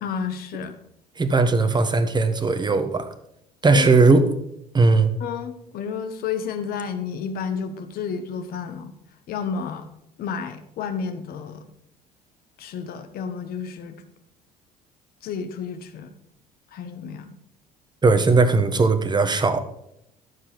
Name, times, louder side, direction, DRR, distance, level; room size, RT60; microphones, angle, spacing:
voice 1, 0.0-0.7 3.7-3.9 5.2-8.9 9.3-9.9 10.2-11.7 12.6-14.0 15.2-16.1 16.7-17.4, left 6 dB, 50° left, 8 dB, 1.2 m, -31 dB
voice 2, 1.2-3.1 3.6-4.2 4.7-5.1 18.0-19.6, right 3 dB, 20° right, 9 dB, 1.3 m, -18 dB
12.5 x 7.5 x 5.1 m, 0.76 s
figure-of-eight pair, 60°, 20 cm